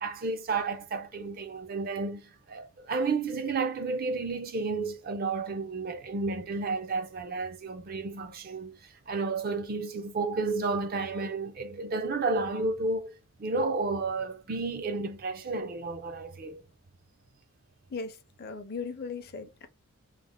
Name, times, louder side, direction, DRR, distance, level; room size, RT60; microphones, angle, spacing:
voice 1, 0.0-8.8 9.1-16.6, right 3 dB, 40° right, 0.4 m, -32 dB
voice 2, 17.9-19.7, left 4 dB, 45° left, 0.5 m, -38 dB
3.2 x 2.0 x 3.5 m
head